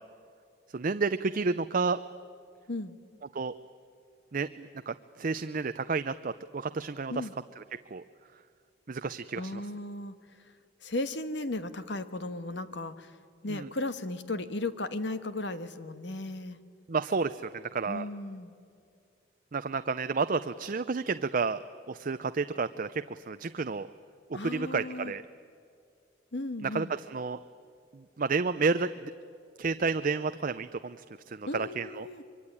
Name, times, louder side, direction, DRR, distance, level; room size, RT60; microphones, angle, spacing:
voice 1, 0.7-2.0 3.3-3.5 4.3-7.3 7.6-7.7 7.9-8.0 8.9-9.6 13.5-13.7 16.9-18.1 19.5-23.9 24.3-25.2 26.6-27.4 27.9-29.1 29.6-31.0 31.3-32.1, right 4 dB, 45° right, 11 dB, 0.6 m, -31 dB
voice 2, 9.4-10.1 10.8-13.1 13.4-16.6 17.9-18.5 24.3-25.1 26.3-26.9 31.5-32.2, left 2 dB, 65° left, 11 dB, 1.4 m, -35 dB
24.5 x 23.5 x 9.8 m, 2.4 s
head